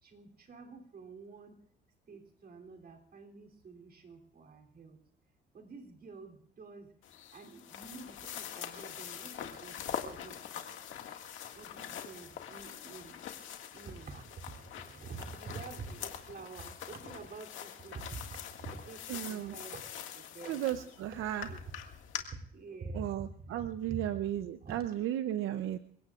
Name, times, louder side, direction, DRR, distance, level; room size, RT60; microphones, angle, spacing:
voice 1, 0.0-1.6 2.1-5.0 5.5-6.9 7.3-10.6 11.5-13.1 13.7-21.6 22.5-24.2 24.6-24.8, right 4 dB, 50° right, 2 dB, 3.1 m, -48 dB
sound 1, 7.0-22.2, left 9 dB, 85° left, 1.9 m, -44 dB
voice 2, 19.1-19.5 20.5-21.5 22.9-25.8, right 12 dB, 85° right, 10 dB, 0.6 m, -35 dB
28.5 x 17.0 x 2.4 m, 0.63 s
cardioid pair, 90°, 20 cm